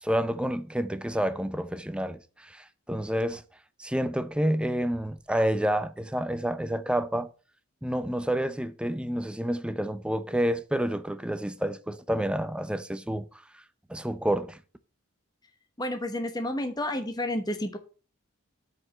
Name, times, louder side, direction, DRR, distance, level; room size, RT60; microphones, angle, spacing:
voice 1, 0.0-3.4 3.8-7.3 7.8-13.4 13.9-14.6, equal, 5° right, 0.6 m, -29 dB
voice 2, 15.8-17.8, left 1 dB, 20° left, 1.1 m, -30 dB
7.8 x 5.2 x 6.3 m
head